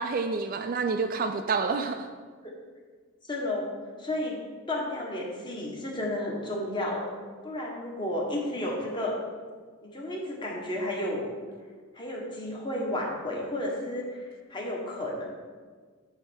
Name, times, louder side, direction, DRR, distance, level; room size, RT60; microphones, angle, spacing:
voice 1, 0.0-2.1, right 4 dB, 40° right, 7 dB, 0.3 m, -28 dB
voice 2, 3.2-4.4 4.7-7.1 7.4-9.2 9.8-11.3 11.9-15.2, left 1 dB, 20° left, -2 dB, 1.3 m, -32 dB
8.7 x 3.2 x 6.3 m, 1.5 s
head